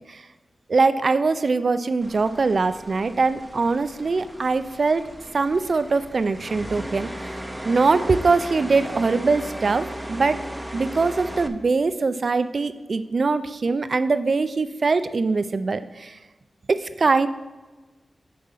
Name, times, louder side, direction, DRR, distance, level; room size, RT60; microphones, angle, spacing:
voice 1, 0.7-5.1 5.3-7.1 7.6-10.4 10.7-16.1 16.7-17.3, right 4 dB, 55° right, 12 dB, 0.4 m, -22 dB
sound 1, 2.0-11.5, equal, 10° right, 0.6 m, -36 dB
7.6 x 4.7 x 5.6 m, 1.2 s
wide cardioid pair, 85°, 0 cm